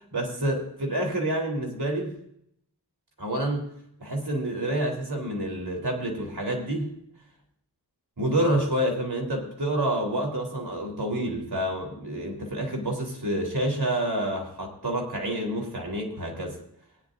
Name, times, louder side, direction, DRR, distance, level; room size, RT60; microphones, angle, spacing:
voice 1, 0.1-2.2 3.2-3.7 4.0-6.9 8.2-16.6, right 1 dB, 70° right, 0 dB, 3.6 m, -28 dB
19.5 x 10.0 x 2.6 m, 0.71 s
wide cardioid pair, 55°, 40 cm